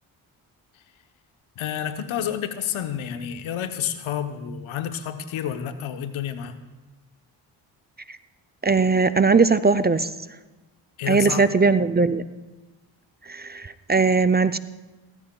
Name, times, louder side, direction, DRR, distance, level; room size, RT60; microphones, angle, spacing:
voice 1, 1.6-6.6 11.0-11.5, left 9 dB, 75° left, 8 dB, 1.1 m, -30 dB
voice 2, 8.6-10.1 11.1-12.2 13.3-14.6, right 4 dB, 20° right, 12 dB, 0.5 m, -19 dB
18.0 x 15.5 x 2.3 m, 1.2 s
supercardioid pair, 50°, 48 cm